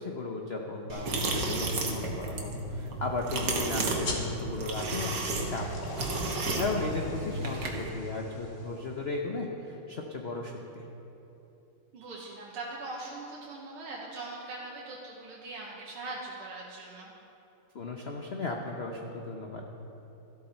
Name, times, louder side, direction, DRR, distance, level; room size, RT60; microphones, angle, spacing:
voice 1, 0.0-6.1 6.4-10.8 17.7-19.7, left 3 dB, 80° left, 1 dB, 0.5 m, -36 dB
sound 1, 0.9-7.9, right 2 dB, 55° right, 1.8 m, -32 dB
sound 2, 4.0-9.1, left 2 dB, 40° left, 1.6 m, -43 dB
voice 2, 7.4-7.7 11.9-17.1, right 2 dB, 85° right, -4 dB, 2.0 m, -41 dB
13.5 x 12.0 x 4.3 m, 3.0 s
omnidirectional pair, 2.3 m